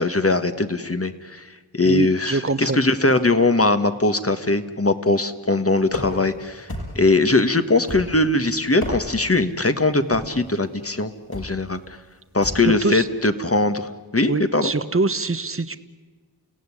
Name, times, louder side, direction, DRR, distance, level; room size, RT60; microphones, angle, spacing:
voice 1, 0.0-12.0 12.3-14.7, left 2 dB, 35° left, 10 dB, 1.6 m, -21 dB
voice 2, 1.8-2.8 12.6-13.1 14.3-15.8, right 3 dB, 35° right, 12 dB, 1.1 m, -24 dB
Bashing Car Interior Singles B, 5.9-6.3 6.7-7.2 7.9-8.3 8.7-9.3 10.1-10.4 11.3-11.6 12.4-12.7, left 1 dB, 60° left, 6.5 m, -32 dB
30.0 x 17.0 x 9.9 m, 1.4 s
wide cardioid pair, 50°, 40 cm